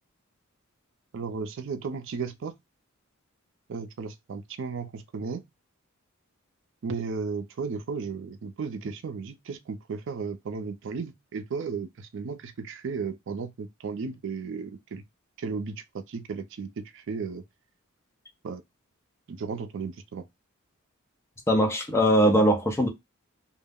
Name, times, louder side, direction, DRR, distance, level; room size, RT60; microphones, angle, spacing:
voice 1, 1.1-2.5 3.7-5.4 6.8-15.0 15.4-17.4 18.4-18.6 19.3-20.3, right 5 dB, 60° right, 0.4 m, -34 dB
voice 2, 21.5-22.9, equal, 15° left, 0.5 m, -21 dB
2.2 x 2.0 x 3.3 m
head